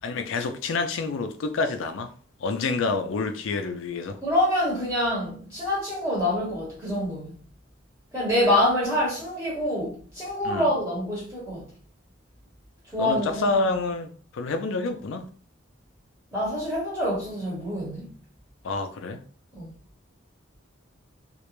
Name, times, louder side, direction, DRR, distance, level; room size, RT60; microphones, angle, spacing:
voice 1, 0.0-2.1 2.4-4.2 10.4-10.7 13.0-15.3 18.6-19.2, left 3 dB, 75° left, 0.4 m, -28 dB
voice 2, 4.2-7.4 8.1-11.7 12.9-13.5 16.3-18.1 19.5-19.7, left 1 dB, 10° right, 0.9 m, -26 dB
2.4 x 2.1 x 3.0 m
head